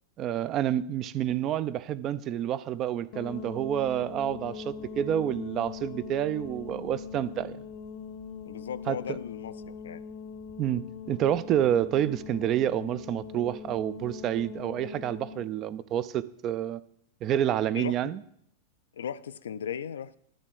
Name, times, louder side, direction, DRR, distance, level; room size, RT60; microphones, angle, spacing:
voice 1, 0.2-7.6 8.9-9.2 10.6-16.8 17.2-18.2, right 11 dB, 35° right, 0.4 m, -29 dB
sound 1, 3.1-15.5, left 7 dB, 45° left, 0.7 m, -42 dB
voice 2, 8.4-10.0 17.7-18.0 18.9-20.2, left 8 dB, 65° left, 0.3 m, -37 dB
11.0 x 3.8 x 7.5 m
figure-of-eight pair, 90°, 0 cm